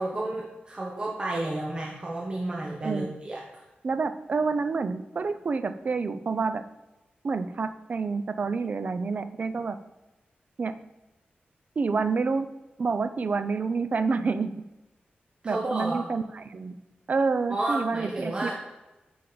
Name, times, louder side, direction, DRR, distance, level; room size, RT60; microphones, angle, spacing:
voice 1, 0.0-3.7 15.4-16.0 17.5-18.5, right 2 dB, 30° right, -3 dB, 1.0 m, -31 dB
voice 2, 3.8-6.6 7.2-9.8 10.6-10.7 11.8-12.5 12.8-14.5 15.4-16.7 17.1-18.5, right 4 dB, 45° right, 11 dB, 0.5 m, -28 dB
10.0 x 5.0 x 4.0 m, 1.1 s
wide cardioid pair, 140°, 4 cm